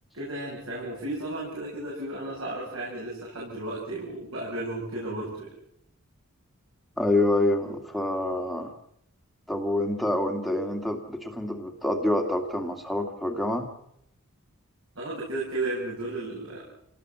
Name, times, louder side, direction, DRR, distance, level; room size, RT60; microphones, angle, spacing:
voice 1, 0.1-5.5 14.9-16.6, right 2 dB, 60° right, -4 dB, 7.9 m, -34 dB
voice 2, 7.0-8.7 9.5-13.7, left 1 dB, ahead, 3 dB, 2.2 m, -27 dB
27.5 x 19.0 x 7.5 m, 0.77 s
head